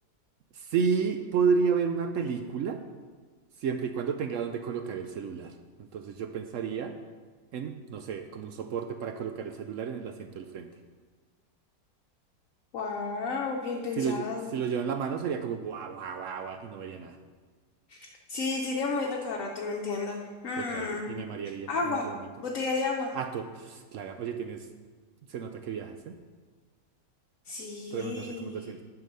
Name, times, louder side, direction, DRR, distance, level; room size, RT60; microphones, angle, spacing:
voice 1, 0.5-2.8 3.6-7.0 7.5-10.7 14.0-17.2 20.6-22.3 23.1-24.7 25.3-26.1 27.9-28.8, right 6 dB, 75° right, 7 dB, 0.7 m, -32 dB
voice 2, 12.7-14.5 17.9-21.2 21.7-22.1 22.4-23.2 27.5-28.6, left 4 dB, 55° left, -1 dB, 1.1 m, -32 dB
9.8 x 5.8 x 5.4 m, 1.5 s
omnidirectional pair, 1.8 m